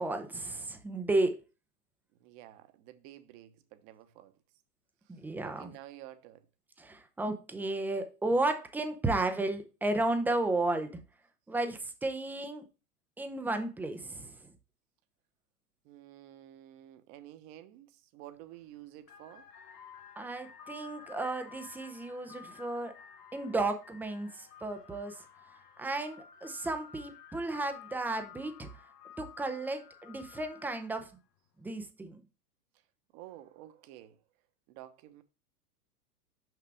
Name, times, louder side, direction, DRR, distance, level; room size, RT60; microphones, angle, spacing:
voice 1, 0.0-1.4 5.1-5.7 6.8-11.0 11.5-12.7 13.2-14.5 20.2-23.0 23.3-25.2 25.8-28.7 29.2-31.1 31.6-32.2, right 2 dB, 5° right, 0.4 m, -33 dB
voice 2, 2.2-4.3 5.0-6.5 15.8-19.5 33.1-34.2 34.7-35.2, right 13 dB, 40° right, 1.0 m, -51 dB
sound 1, 18.4-18.6 19.0-31.1, left 7 dB, 75° left, 1.2 m, -53 dB
6.1 x 5.7 x 3.4 m
hypercardioid pair, 110°, 48 cm